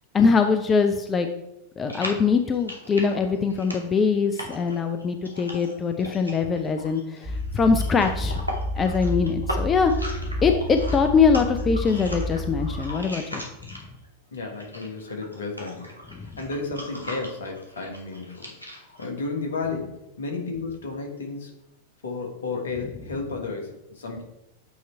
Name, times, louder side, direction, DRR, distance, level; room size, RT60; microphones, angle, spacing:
voice 1, 0.1-1.3 1.8-8.4 8.8-9.9 10.4-13.4, left 5 dB, 20° left, 6 dB, 0.5 m, -22 dB
sound 1, 1.9-14.1 14.4-19.1, equal, 85° left, 1.3 m, -38 dB
sound 2, 7.2-12.8, equal, 25° right, 1.0 m, -30 dB
voice 2, 14.3-21.5 22.0-24.2, left 3 dB, 65° left, 2 dB, 1.4 m, -33 dB
8.0 x 3.1 x 4.4 m, 0.87 s
figure-of-eight pair, 90°, 0 cm